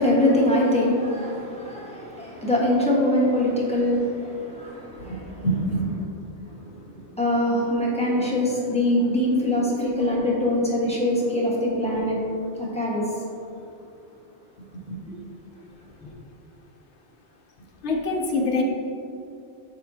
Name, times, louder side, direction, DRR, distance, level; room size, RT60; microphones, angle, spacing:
voice 1, 0.0-5.5 6.6-6.7 7.2-12.2 12.6-13.0 16.0-16.1, left 1 dB, 5° left, -6 dB, 1.2 m, -23 dB
voice 2, 5.4-5.9 7.0-7.1 14.7-15.0 17.8-18.6, left 1 dB, 80° left, 1 dB, 1.1 m, -25 dB
7.6 x 5.3 x 2.8 m, 2.6 s
omnidirectional pair, 1.2 m